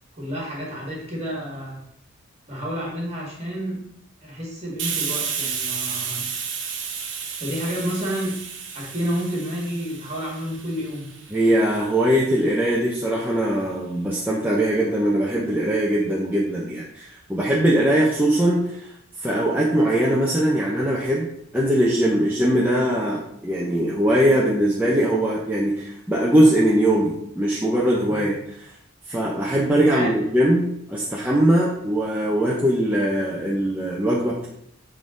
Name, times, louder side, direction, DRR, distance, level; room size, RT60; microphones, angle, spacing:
voice 1, 0.2-1.8 2.5-3.8 4.2-6.3 7.4-8.4 8.7-11.1 17.8-17.9 28.0-28.3 29.9-30.1, equal, 30° right, -3 dB, 1.9 m, -30 dB
Hiss, 4.8-12.2, right 6 dB, 60° right, 0.9 m, -32 dB
voice 2, 11.3-18.9 19.2-21.3 21.5-28.4 28.6-28.7 29.1-34.5, right 1 dB, 10° right, -5 dB, 0.7 m, -21 dB
7.4 x 3.7 x 3.8 m, 0.71 s
head